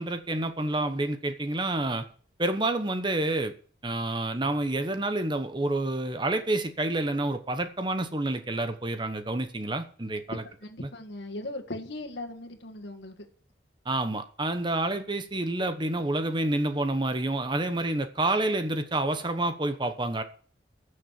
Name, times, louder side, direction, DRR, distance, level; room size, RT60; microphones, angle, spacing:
voice 1, 0.0-2.1 2.4-3.5 3.8-10.4 10.8-10.9 13.8-20.2, right 2 dB, 25° right, 9 dB, 1.1 m, -28 dB
voice 2, 10.3-13.3, left 1 dB, 75° left, 4 dB, 1.7 m, -38 dB
13.0 x 6.7 x 7.0 m, 0.43 s
head